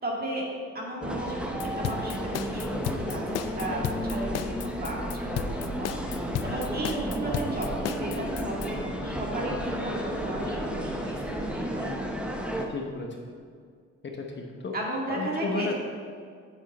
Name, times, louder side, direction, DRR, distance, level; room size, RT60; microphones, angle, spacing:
voice 1, 0.0-0.4 0.7-11.9 14.7-15.7, right 1 dB, 30° right, -3 dB, 2.3 m, -35 dB
sound 1, 1.0-12.7, equal, 5° right, 1.0 m, -32 dB
sound 2, 1.6-8.7, left 10 dB, 60° left, 0.5 m, -33 dB
voice 2, 12.7-13.2 14.0-14.7 15.1-15.7, left 4 dB, 40° left, 1 dB, 1.1 m, -33 dB
8.2 x 7.1 x 4.2 m, 2.1 s
cardioid pair, 90°, 30 cm